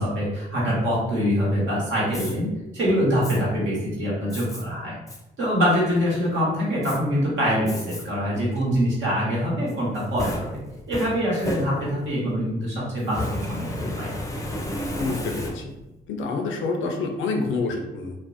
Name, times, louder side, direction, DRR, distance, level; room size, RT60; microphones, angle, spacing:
voice 1, 0.0-2.5 2.7-5.0 5.4-10.6 10.9-14.1, equal, 70° right, -5 dB, 1.1 m, -24 dB
Fire, 2.1-2.3 3.2-3.4 4.3-4.6 5.1-5.2 5.7-6.2 6.8-7.0 7.7-8.0 8.5-8.6 9.7-12.2 13.0-15.9, left 1 dB, 15° left, 0.5 m, -33 dB
voice 2, 15.0-15.6 16.1-18.2, left 3 dB, 70° left, 3 dB, 0.5 m, -27 dB
2.4 x 2.0 x 2.5 m, 0.98 s
hypercardioid pair, 45°, 21 cm